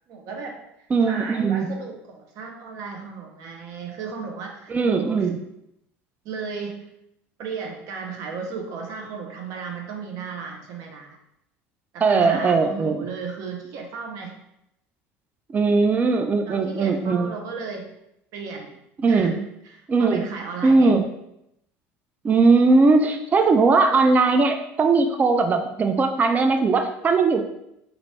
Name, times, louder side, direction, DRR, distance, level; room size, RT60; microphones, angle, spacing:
voice 1, 0.1-0.6 1.0-5.3 6.2-6.9 7.4-11.2 11.9-14.4 16.5-17.9 18.3-18.7 19.1-19.3 19.6-21.0, right 5 dB, 60° right, 2 dB, 0.7 m, -35 dB
voice 2, 0.9-1.7 4.7-5.4 12.0-13.1 15.5-17.3 19.0-19.4 19.9-20.2 20.6-21.1 22.2-27.4, right 4 dB, 25° right, 6 dB, 0.3 m, -19 dB
3.0 x 2.5 x 3.1 m, 0.81 s
supercardioid pair, 95°, 6 cm